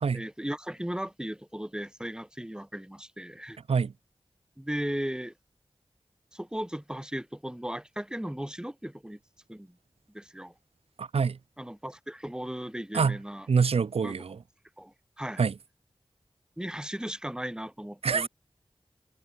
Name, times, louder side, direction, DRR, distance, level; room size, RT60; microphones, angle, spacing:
voice 1, 0.1-3.6 4.6-5.3 6.3-9.2 9.5-9.8 10.1-10.5 11.6-13.5 14.0-14.2 14.8-15.5 16.6-18.3, equal, 10° right, 2.6 m, -36 dB
voice 2, 11.0-11.4 12.9-13.2 13.5-14.4 15.4-15.5 18.0-18.3, right 5 dB, 80° right, 0.5 m, -25 dB
wide cardioid pair, 70°, 10 cm